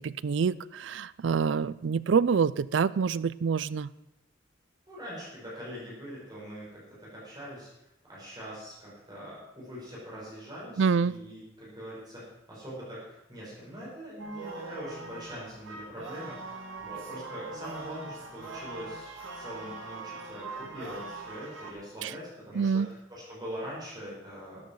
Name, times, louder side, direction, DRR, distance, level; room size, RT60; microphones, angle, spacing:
voice 1, 0.0-3.9 10.8-11.2 22.0-22.1 22.5-22.9, right 6 dB, 65° right, 18 dB, 0.4 m, -26 dB
voice 2, 4.9-7.7 8.1-16.5 16.8-24.7, equal, 20° right, -7 dB, 5.7 m, -42 dB
sound 1, 14.2-21.7, right 3 dB, 85° right, 2.2 m, -42 dB
13.0 x 10.5 x 4.7 m, 0.87 s
head